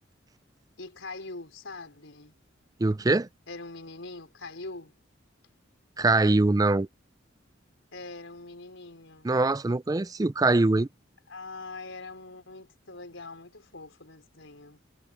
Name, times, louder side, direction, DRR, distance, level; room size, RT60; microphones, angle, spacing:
voice 1, 0.8-2.3 3.5-4.9 7.9-9.3 11.3-14.8, left 3 dB, 75° left, 4.3 m, -43 dB
voice 2, 2.8-3.3 6.0-6.9 9.2-10.9, right 2 dB, 20° right, 0.4 m, -23 dB
head